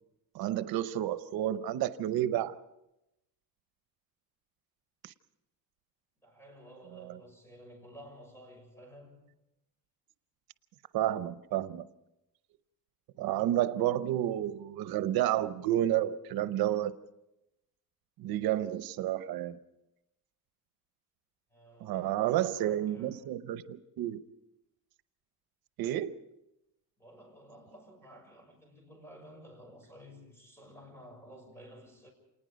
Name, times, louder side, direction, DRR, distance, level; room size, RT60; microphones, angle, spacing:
voice 1, 0.3-2.6 5.0-5.1 6.9-7.1 10.9-11.9 13.2-16.9 18.2-19.6 21.8-24.2 25.8-26.2, right 12 dB, 90° right, 13 dB, 0.8 m, -30 dB
voice 2, 6.2-9.2 21.5-23.3 27.0-32.1, equal, 5° left, 3 dB, 6.5 m, -53 dB
27.5 x 19.5 x 5.2 m, 0.92 s
cardioid pair, 140°, 35 cm